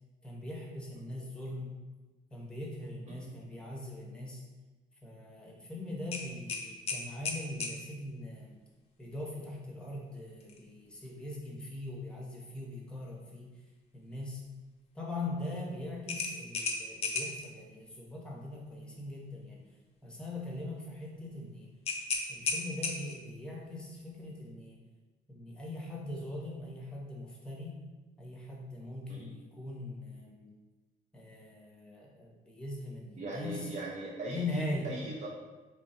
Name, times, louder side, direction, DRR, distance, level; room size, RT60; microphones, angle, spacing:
voice 1, 0.2-1.7 2.3-4.4 5.0-8.5 9.0-13.5 13.9-14.4 15.0-19.6 20.0-21.7 22.3-24.8 25.3-27.8 28.2-30.5 31.1-33.7 34.3-34.9, left 2 dB, 5° left, -2 dB, 0.8 m, -41 dB
sound 1, 6.1-7.8 10.4-10.6 11.1-11.2 16.1-17.5 21.8-23.3, left 4 dB, 35° left, 0.5 m, -34 dB
voice 2, 33.2-35.3, right 2 dB, 45° right, -4 dB, 0.6 m, -40 dB
3.0 x 2.3 x 4.1 m, 1.2 s
cardioid pair, 110°, 17 cm